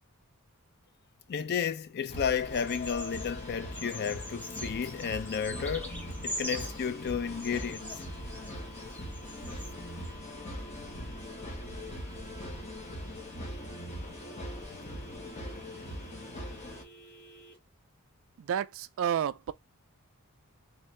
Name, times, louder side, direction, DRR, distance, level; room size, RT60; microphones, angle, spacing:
voice 1, 1.3-5.9 6.2-8.0, left 7 dB, 45° left, 0.4 m, -32 dB
sound 1, 2.1-16.8, left 1 dB, 30° left, 1.0 m, -41 dB
sound 2, 2.4-17.6, right 2 dB, 80° left, 2.2 m, -53 dB
Bird vocalization bird call bird song, 2.5-3.3 3.7-6.9 7.4-9.7 10.0-10.1, equal, 10° left, 0.8 m, -43 dB
voice 2, 18.4-19.5, right 9 dB, 60° right, 0.3 m, -30 dB
3.6 x 2.6 x 3.2 m
head